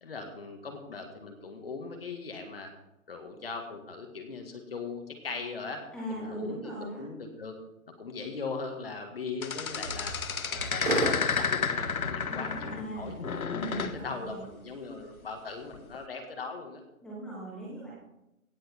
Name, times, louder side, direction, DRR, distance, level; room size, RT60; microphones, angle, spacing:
voice 1, 0.0-2.7 3.1-5.8 6.1-7.5 8.0-10.2 10.5-13.2 13.6-16.8, left 4 dB, 45° left, 4 dB, 1.9 m, -39 dB
voice 2, 5.9-7.0 12.3-13.1 13.5-14.4 17.0-17.9, right 1 dB, ahead, -7 dB, 2.0 m, -39 dB
sound 1, 9.4-12.9 13.2-14.0 15.7-16.0, left 6 dB, 85° left, 1.2 m, -31 dB
sound 2, 9.7-14.5, right 2 dB, 65° right, 5.1 m, -37 dB
17.0 x 7.8 x 4.5 m, 0.89 s
hypercardioid pair, 170°, 41 cm